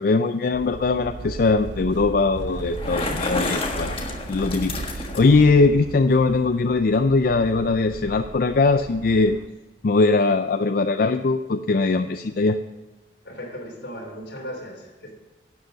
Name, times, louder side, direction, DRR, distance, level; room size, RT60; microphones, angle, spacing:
voice 1, 0.0-4.0 4.3-9.4 9.8-12.6, left 3 dB, 55° left, 0.4 m, -20 dB
sound 1, 0.5-9.5, right 3 dB, 90° right, 0.6 m, -36 dB
Bicycle, 2.6-5.5, left 2 dB, 30° left, 1.4 m, -30 dB
voice 2, 13.2-15.1, equal, 80° left, 3.2 m, -36 dB
12.0 x 8.0 x 5.1 m
head